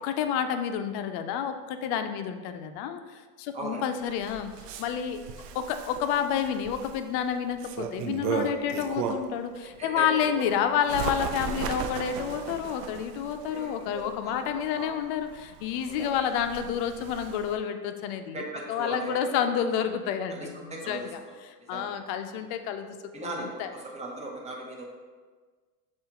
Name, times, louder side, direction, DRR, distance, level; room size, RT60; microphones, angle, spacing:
voice 1, 0.0-3.0 3.4-4.5 4.8-5.2 5.5-18.4 18.7-21.1 21.7-23.0 23.2-23.7, left 8 dB, 55° left, 8 dB, 0.5 m, -29 dB
Bird, 4.0-9.4 9.9-17.6, right 6 dB, 90° right, 0.6 m, -36 dB
voice 2, 9.6-10.4 13.5-14.5 14.7-14.9 15.9-16.2 18.3-19.5 20.3-21.1 21.6-22.0 23.1-24.8, right 2 dB, 15° right, -2 dB, 0.8 m, -38 dB
7.0 x 2.5 x 2.9 m, 1.4 s
supercardioid pair, 110°, 47 cm